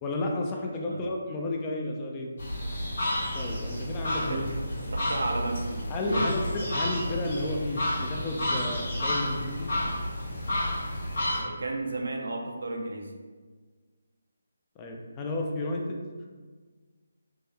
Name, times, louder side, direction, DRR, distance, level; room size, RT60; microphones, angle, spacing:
voice 1, 0.0-2.3 3.3-4.5 5.9-9.7 14.8-16.0, left 2 dB, 20° left, 0 dB, 0.4 m, -32 dB
sound 1, 2.4-11.4, left 1 dB, 60° left, 1.5 m, -31 dB
voice 2, 4.9-6.3 11.4-13.1, right 2 dB, 75° right, 2 dB, 0.5 m, -33 dB
3.5 x 2.1 x 3.2 m, 1.5 s
figure-of-eight pair, 160°, 0 cm